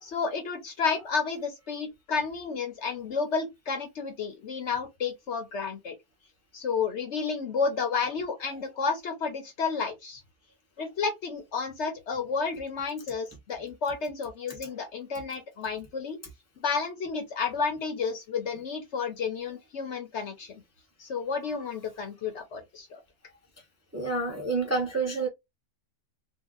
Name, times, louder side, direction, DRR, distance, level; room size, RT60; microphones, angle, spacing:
voice 1, 0.0-5.9 6.5-10.2 10.8-16.2 16.6-20.6 21.0-23.0, left 5 dB, 55° left, 1.0 m, -31 dB
voice 2, 23.9-25.3, right 3 dB, 15° right, 0.7 m, -28 dB
2.9 x 2.4 x 3.7 m
omnidirectional pair, 1.5 m